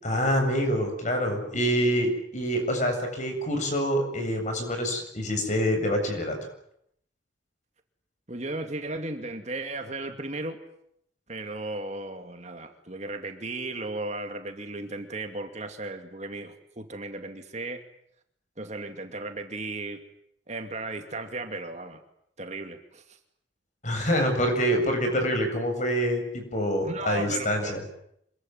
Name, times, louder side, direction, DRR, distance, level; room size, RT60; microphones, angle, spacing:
voice 1, 0.0-6.4 23.8-27.8, equal, 40° left, 4 dB, 7.8 m, -26 dB
voice 2, 8.3-10.6 11.3-17.8 18.6-20.0 20.5-22.0 22.4-23.2 26.9-27.7, right 2 dB, 35° right, 6 dB, 2.5 m, -35 dB
27.5 x 23.0 x 9.5 m, 0.74 s
head